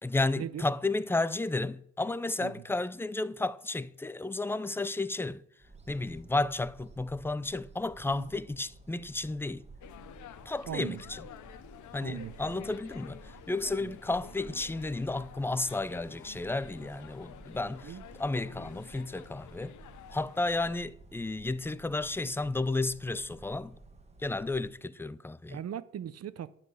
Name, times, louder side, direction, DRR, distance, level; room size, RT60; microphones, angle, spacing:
voice 1, 0.0-5.4 5.9-9.7 10.5-11.3 11.9-19.7 20.1-23.8 24.2-25.6, left 2 dB, 10° left, 0.5 m, -32 dB
sound 1, 5.6-24.8, right 3 dB, 20° right, 1.5 m, -53 dB
sound 2, 9.8-20.8, left 11 dB, 75° left, 0.9 m, -51 dB
voice 2, 10.7-11.0 12.0-12.7 13.8-13.9 17.8-18.0 25.5-26.6, right 10 dB, 55° right, 0.8 m, -39 dB
11.5 x 6.1 x 9.3 m
cardioid pair, 90°, 30 cm